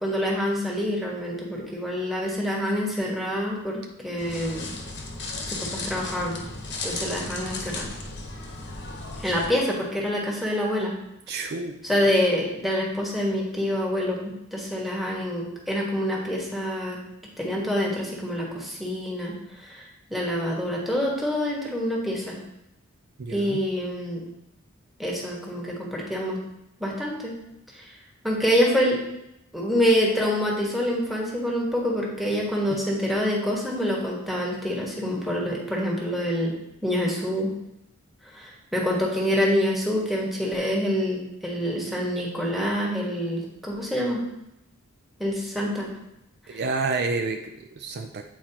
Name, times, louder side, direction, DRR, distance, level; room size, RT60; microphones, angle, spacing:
voice 1, 0.0-4.7 5.5-6.4 6.8-7.9 9.2-10.9 11.8-17.0 17.4-19.8 20.1-22.4 23.3-24.2 25.0-26.4 26.8-27.3 27.7-27.9 28.2-29.0 29.5-36.6 36.8-37.5 38.3-44.2 45.2-45.9 46.5-46.6, equal, ahead, -3 dB, 1.4 m, -26 dB
sound 1, 4.2-9.5, left 2 dB, 55° left, 1.0 m, -35 dB
voice 2, 11.3-11.9 23.2-23.6 32.7-32.8 46.5-48.3, right 3 dB, 55° right, 5 dB, 0.4 m, -30 dB
8.7 x 4.4 x 2.9 m, 0.83 s
head